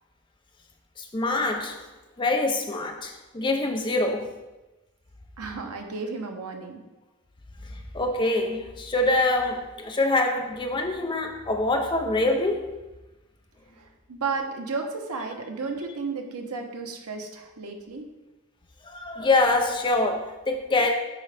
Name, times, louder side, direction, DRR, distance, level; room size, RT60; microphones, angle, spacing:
voice 1, 1.0-1.8 2.2-4.3 7.9-12.7 18.8-20.9, left 2 dB, 20° left, 0.5 m, -25 dB
voice 2, 5.4-6.8 13.8-18.1, right 4 dB, 90° right, 0.9 m, -33 dB
9.7 x 3.8 x 3.4 m
head